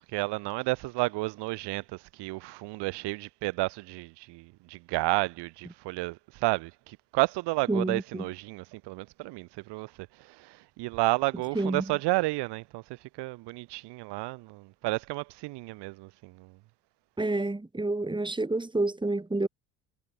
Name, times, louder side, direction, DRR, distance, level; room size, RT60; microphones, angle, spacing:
voice 1, 0.1-9.9 10.2-12.8 13.2-16.5, right 22 dB, 55° right, 7.4 m, -31 dB
voice 2, 7.7-8.3 11.5-11.8 17.2-19.5, right 2 dB, 10° right, 5.8 m, -29 dB
figure-of-eight pair, 65°, 48 cm